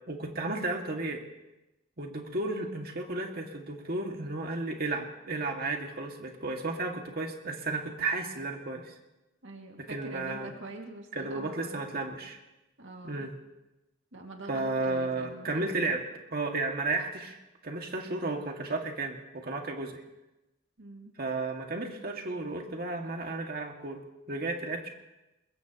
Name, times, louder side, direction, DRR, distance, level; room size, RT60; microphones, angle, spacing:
voice 1, 0.1-1.2 2.0-8.9 9.9-10.5 11.1-12.4 13.0-13.3 14.5-16.0 16.3-17.4 17.6-19.2 19.4-20.0 21.2-24.0 24.3-24.9, right 2 dB, 50° right, 2 dB, 2.1 m, -33 dB
voice 2, 9.4-12.0 12.8-13.3 14.1-15.6 20.8-21.2, right 2 dB, 65° right, 1 dB, 2.2 m, -45 dB
22.0 x 21.0 x 3.0 m, 1.0 s
head